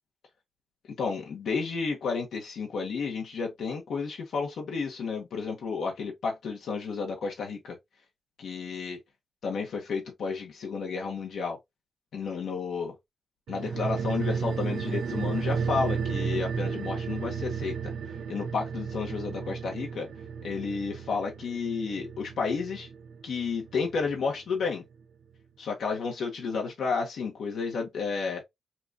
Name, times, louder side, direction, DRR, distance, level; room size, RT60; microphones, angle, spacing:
voice 1, 1.0-7.7 8.4-9.0 9.4-11.6 12.1-12.9 13.5-17.9 18.3-20.1 20.4-22.9 23.2-24.8 25.6-28.4, left 5 dB, 85° left, 1.2 m, -31 dB
sound 1, 13.5-24.3 24.6-24.7, right 6 dB, 85° right, 0.7 m, -33 dB
5.8 x 2.5 x 2.7 m
wide cardioid pair, 130°, 0 cm